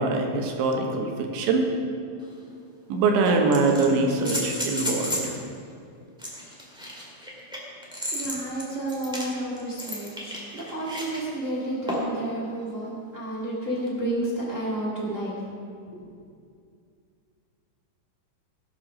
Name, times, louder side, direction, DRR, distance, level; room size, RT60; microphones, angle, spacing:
voice 1, 0.0-1.7 2.9-5.3, right 3 dB, 85° right, 2 dB, 3.6 m, -23 dB
sound 1, 2.2-2.3 3.2-5.3 6.2-11.2 11.9-12.2 13.9-14.0, equal, 5° right, 0.4 m, -33 dB
voice 2, 8.1-15.3 15.9-16.0, right 1 dB, 50° right, -5 dB, 0.8 m, -31 dB
18.0 x 7.2 x 6.1 m, 2.3 s
omnidirectional pair, 5.2 m